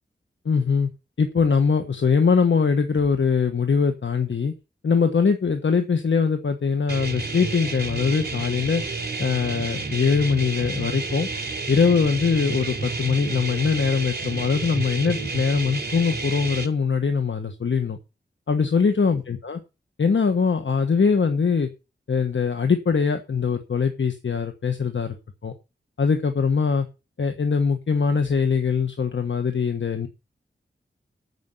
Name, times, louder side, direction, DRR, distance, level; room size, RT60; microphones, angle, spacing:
voice 1, 0.4-0.9 1.2-4.5 4.8-8.8 9.2-11.3 11.7-18.0 18.5-19.6 20.0-21.7 22.1-25.2 25.4-25.5 26.0-26.9 27.2-30.1, left 5 dB, 75° left, 7 dB, 1.3 m, -22 dB
sound 1, 6.9-16.7, right 3 dB, 55° right, 3.2 m, -30 dB
9.6 x 7.1 x 7.8 m, 0.29 s
wide cardioid pair, 80°, 20 cm